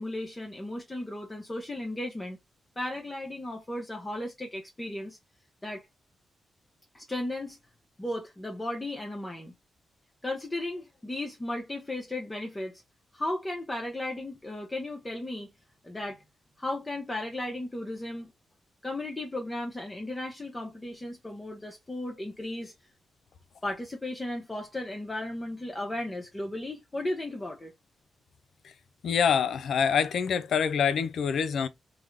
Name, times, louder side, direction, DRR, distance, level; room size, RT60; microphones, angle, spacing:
voice 1, 0.0-2.4 2.8-5.2 5.6-5.8 6.9-7.6 8.0-9.5 10.2-12.8 13.1-15.5 15.8-16.2 16.6-18.3 18.8-22.7 23.6-27.7, left 1 dB, 20° left, 0.7 m, -35 dB
voice 2, 29.0-31.7, left 7 dB, 75° left, 0.4 m, -25 dB
3.5 x 2.1 x 3.1 m
cardioid pair, 80°, 0 cm